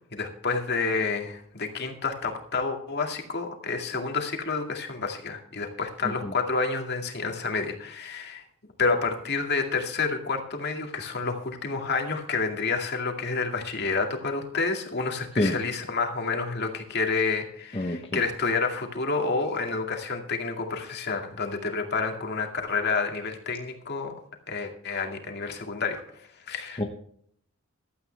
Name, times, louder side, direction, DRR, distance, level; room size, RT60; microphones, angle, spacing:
voice 1, 0.1-8.4 8.8-24.1 24.5-26.8, left 4 dB, 50° left, 3 dB, 2.2 m, -29 dB
voice 2, 17.7-18.2 26.8-26.9, left 1 dB, 25° left, 3 dB, 0.9 m, -26 dB
15.5 x 12.5 x 3.4 m, 0.65 s
head